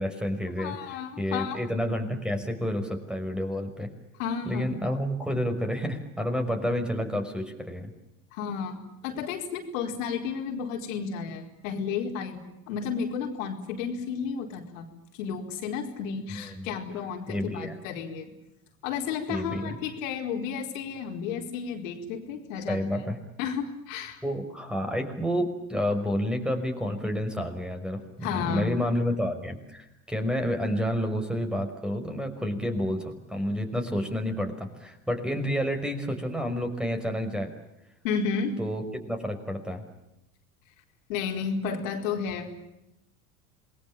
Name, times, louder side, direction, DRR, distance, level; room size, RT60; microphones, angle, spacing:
voice 1, 0.0-3.9 4.5-7.9 16.4-16.7 17.3-17.8 19.3-19.8 22.7-23.2 24.2-37.5 38.6-39.8, equal, ahead, 5 dB, 5.5 m, -30 dB
voice 2, 0.6-1.6 4.2-4.7 8.3-14.9 15.1-18.3 18.8-22.8 23.4-24.2 28.2-28.7 38.0-38.6 41.1-42.6, left 6 dB, 70° left, 2 dB, 4.8 m, -32 dB
28.0 x 20.5 x 8.8 m, 0.88 s
hypercardioid pair, 80°, 41 cm